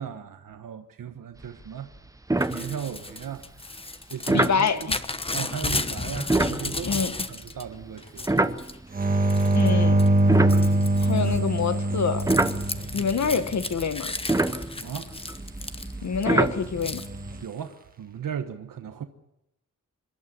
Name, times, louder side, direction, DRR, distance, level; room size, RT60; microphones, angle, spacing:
voice 1, 0.0-1.9 2.5-3.7 4.1-4.9 5.3-7.0 7.3-8.5 12.9-13.4 14.8-15.2 17.4-19.1, right 8 dB, 90° right, 1.3 m, -36 dB
sound 1, 1.4-1.7 1.9-2.0 2.3-3.1 4.3-4.6 6.2-9.1 9.7-11.5 12.0-17.4, right 2 dB, 10° right, 0.8 m, -27 dB
Crumpling crinkling / Tearing, 2.4-7.6 8.0-8.8 9.3-9.7 10.0-16.2 16.8-17.1, left 2 dB, 15° left, 1.0 m, -34 dB
voice 2, 4.3-5.0 6.8-7.1 9.5-10.0 11.0-12.3 12.9-14.1 16.0-17.0, left 6 dB, 60° left, 1.4 m, -26 dB
sound 2, 8.9-13.6 16.8-17.4, right 1 dB, 25° right, 1.5 m, -23 dB
26.5 x 12.0 x 9.9 m
wide cardioid pair, 155°, 32 cm